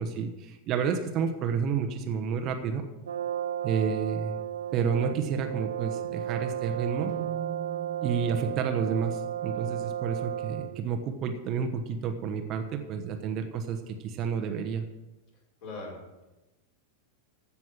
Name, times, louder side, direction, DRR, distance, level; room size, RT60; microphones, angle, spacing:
voice 1, 0.0-2.8 3.6-4.4 4.7-7.1 8.0-13.8 14.0-14.8, right 6 dB, 35° right, 6 dB, 1.2 m, -30 dB
Brass instrument, 3.1-10.9, right 10 dB, 65° right, 0.3 m, -34 dB
sound 1, 7.1-11.0, right 8 dB, 20° right, 2.1 m, -44 dB
voice 2, 15.6-16.2, left 2 dB, 45° left, -2 dB, 5.7 m, -41 dB
15.5 x 6.1 x 7.5 m, 1.1 s
figure-of-eight pair, 90°, 0 cm